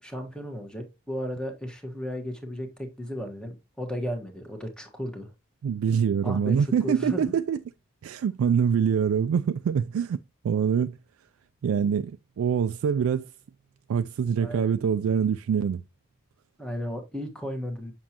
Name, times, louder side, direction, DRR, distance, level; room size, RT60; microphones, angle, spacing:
voice 1, 0.0-5.3 6.2-7.3 14.4-14.7 16.6-17.9, equal, 5° left, 1.3 m, -34 dB
voice 2, 5.6-7.6 8.0-10.2 10.4-11.0 11.6-13.3 13.9-15.8, right 7 dB, 70° right, 0.3 m, -25 dB
7.3 x 6.0 x 2.8 m
head